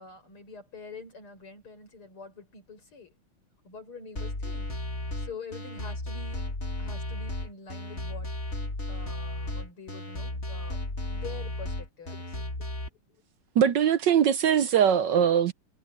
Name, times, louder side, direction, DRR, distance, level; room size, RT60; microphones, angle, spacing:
voice 1, 0.0-3.1 3.6-4.7 5.2-6.5 6.8-8.3 8.9-12.3, left 4 dB, 75° left, 7.5 m, -45 dB
sound 1, 4.2-12.9, left 1 dB, 30° left, 2.9 m, -34 dB
voice 2, 13.6-15.5, right 8 dB, 65° right, 1.2 m, -21 dB
omnidirectional pair, 2.4 m